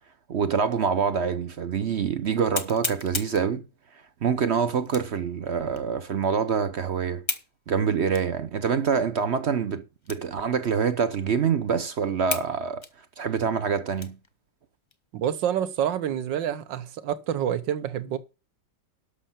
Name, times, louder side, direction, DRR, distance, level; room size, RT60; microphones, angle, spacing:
voice 1, 0.3-3.7 4.2-7.2 7.7-12.9 13.2-14.2, right 6 dB, 55° right, 0.7 m, -26 dB
sound 1, 1.2-1.3 1.8-1.9 2.5-3.5 4.8-5.2 5.8-5.9 7.2-7.5 8.1-8.3 8.9-9.0 10.0-10.4 10.7-10.8 11.4-11.5 12.3-12.5 12.8-14.3 14.8-15.0 15.4-15.9, left 3 dB, 30° left, 0.5 m, -33 dB
voice 2, 15.1-18.2, right 10 dB, 75° right, 1.7 m, -27 dB
11.5 x 6.4 x 5.7 m
omnidirectional pair, 2.0 m